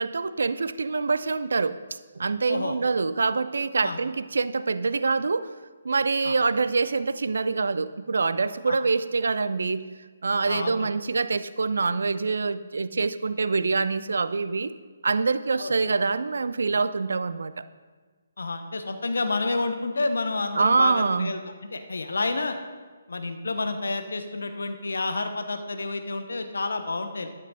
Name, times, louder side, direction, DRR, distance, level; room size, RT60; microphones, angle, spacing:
voice 1, 0.0-1.8 2.1-5.5 5.8-9.9 10.2-14.7 15.0-17.7 20.5-21.3, right 4 dB, 60° right, 14 dB, 0.4 m, -25 dB
voice 2, 10.5-10.9 15.6-15.7 18.4-21.4 21.7-22.6 23.1-27.3, left 3 dB, 60° left, 7 dB, 0.9 m, -29 dB
12.0 x 7.8 x 4.1 m, 1.4 s
figure-of-eight pair, 140°, 0 cm